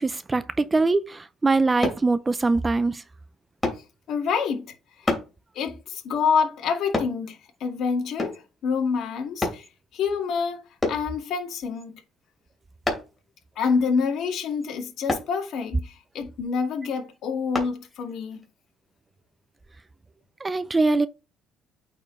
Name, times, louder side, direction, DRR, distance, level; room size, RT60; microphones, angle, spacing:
voice 1, 0.0-3.0 20.4-21.1, right 3 dB, 20° right, 0.4 m, -22 dB
sound 1, 1.8-2.1 3.6-3.9 5.1-5.3 6.9-7.2 8.2-8.5 9.4-9.6 10.8-11.1 12.9-13.2 15.1-15.3 17.5-17.7 18.3-18.4, left 2 dB, 15° left, 2.8 m, -27 dB
voice 2, 4.1-5.1 5.5-9.7 9.9-12.0 13.6-18.4, left 5 dB, 65° left, 2.0 m, -27 dB
8.8 x 4.4 x 3.2 m
cardioid pair, 125°, 0 cm